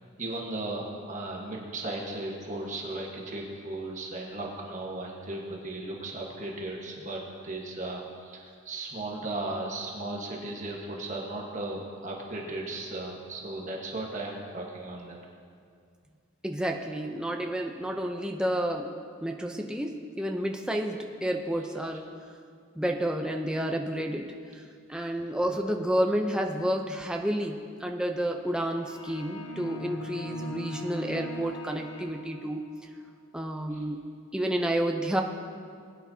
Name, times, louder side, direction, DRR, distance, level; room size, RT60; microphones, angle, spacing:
voice 1, 0.2-15.2 33.7-33.8, right 2 dB, 35° right, -1 dB, 1.3 m, -36 dB
voice 2, 16.4-18.9 19.2-22.1 22.8-24.6 24.9-32.6 33.3-34.0 34.3-35.2, right 1 dB, 5° right, 2 dB, 0.5 m, -30 dB
sound 1, 28.8-32.8, equal, 50° left, 0.8 m, -39 dB
20.5 x 9.7 x 2.8 m, 2.2 s
head